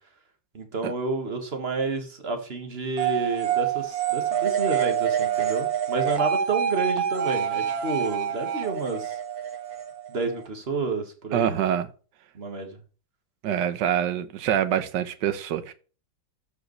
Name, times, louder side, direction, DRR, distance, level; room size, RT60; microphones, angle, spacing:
voice 1, 0.5-9.2 10.1-11.5 12.3-12.8, right 3 dB, 35° right, 1.6 m, -30 dB
sound 1, 3.0-10.5, right 9 dB, 55° right, 1.7 m, -26 dB
voice 2, 11.3-11.9 13.4-15.7, right 10 dB, 70° right, 1.4 m, -25 dB
13.5 x 4.9 x 3.1 m
omnidirectional pair, 2.0 m